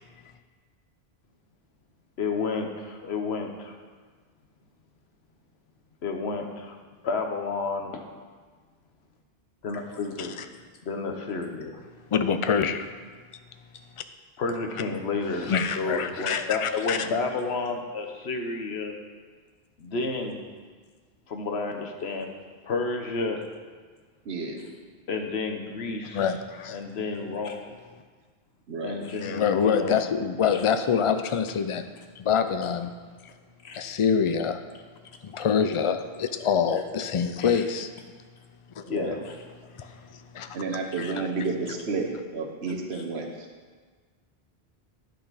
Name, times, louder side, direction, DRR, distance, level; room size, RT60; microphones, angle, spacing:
voice 1, 2.2-3.8 6.0-6.8 7.0-8.0 9.6-10.3 10.8-11.8 14.4-19.0 19.8-20.4 21.3-22.3 22.6-23.4 24.6-24.8 25.1-26.3 26.7-27.6 28.8-30.0 30.5-30.6 33.6-33.8 37.4-37.6 38.9-39.4 39.8-39.9 41.0-41.1 42.9-43.0, left 4 dB, 90° left, 3 dB, 1.2 m, -31 dB
voice 2, 12.1-12.9 15.5-17.1 26.1-26.8 29.2-31.8 32.2-32.9 33.7-34.6 35.2-37.9 38.8-38.9 39.6-39.9 40.1-40.6 41.0-41.2, left 7 dB, 45° left, 9 dB, 0.4 m, -26 dB
voice 3, 24.3-24.6 28.7-29.0 38.9-39.2 40.5-43.3, right 4 dB, 90° right, 2 dB, 1.3 m, -31 dB
10.0 x 6.6 x 4.1 m, 1.5 s
omnidirectional pair, 1.0 m